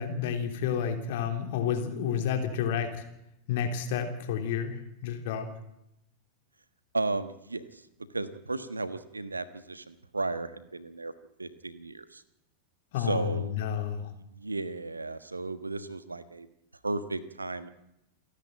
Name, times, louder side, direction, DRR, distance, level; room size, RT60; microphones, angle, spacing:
voice 1, 0.0-3.0 3.5-5.5 12.9-14.1, left 8 dB, 50° left, 5 dB, 3.4 m, -30 dB
voice 2, 6.9-7.8 8.1-11.1 11.4-12.2 13.0-13.6 14.3-16.5 16.8-17.7, right 3 dB, 80° right, 13 dB, 1.3 m, -34 dB
28.5 x 10.5 x 9.1 m, 0.84 s
figure-of-eight pair, 90°, 0 cm